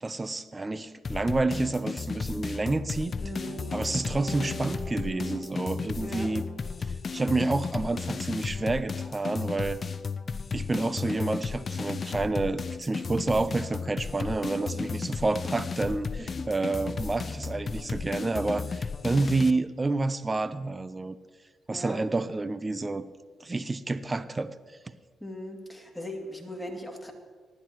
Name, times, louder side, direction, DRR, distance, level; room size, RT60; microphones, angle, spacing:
voice 1, 0.0-3.1 3.7-6.4 7.1-9.8 10.5-21.2 21.7-23.0 23.4-24.5, right 3 dB, 30° right, 14 dB, 0.8 m, -29 dB
sound 1, 1.0-19.5, left 5 dB, 50° left, 0.5 m, -34 dB
voice 2, 3.2-3.6 6.0-6.3 14.6-14.8 18.6-18.7 21.7-22.0 25.2-27.1, equal, 5° left, 1 dB, 2.9 m, -39 dB
sound 2, 3.4-8.1, right 3 dB, 75° right, 2.0 m, -45 dB
18.5 x 11.5 x 3.2 m, 1.5 s
hypercardioid pair, 45°, 0 cm